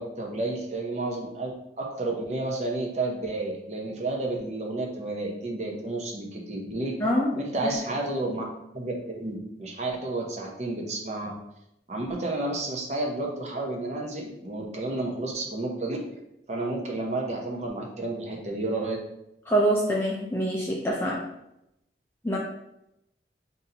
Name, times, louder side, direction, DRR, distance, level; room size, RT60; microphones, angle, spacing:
voice 1, 0.0-1.5 1.8-6.9 7.3-8.4 8.7-11.3 11.9-16.0 16.5-19.0, right 2 dB, 40° right, 0 dB, 0.7 m, -31 dB
voice 2, 7.0-7.3 7.6-7.7 19.5-21.2 22.2-22.4, right 1 dB, 15° left, -3 dB, 0.4 m, -25 dB
5.5 x 2.6 x 2.7 m, 0.83 s
head